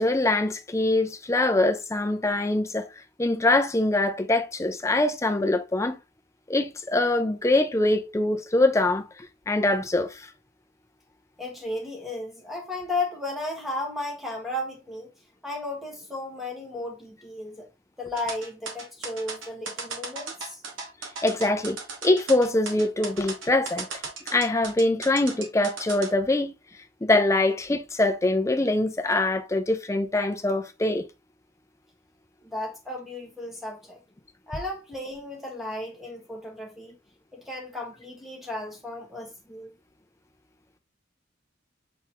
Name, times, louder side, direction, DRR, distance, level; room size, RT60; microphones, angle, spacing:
voice 1, 0.0-2.9 3.2-6.0 6.5-9.0 9.5-10.3 21.2-21.8 22.0-23.9 24.3-26.5 27.0-31.1, left 2 dB, 15° left, 0.5 m, -23 dB
voice 2, 11.4-15.1 15.4-17.7 18.0-20.6 32.4-34.0 34.5-36.9 37.3-39.7, left 2 dB, ahead, 1.4 m, -34 dB
sound 1, 18.2-26.1, right 4 dB, 80° right, 1.2 m, -36 dB
4.3 x 3.9 x 2.9 m
head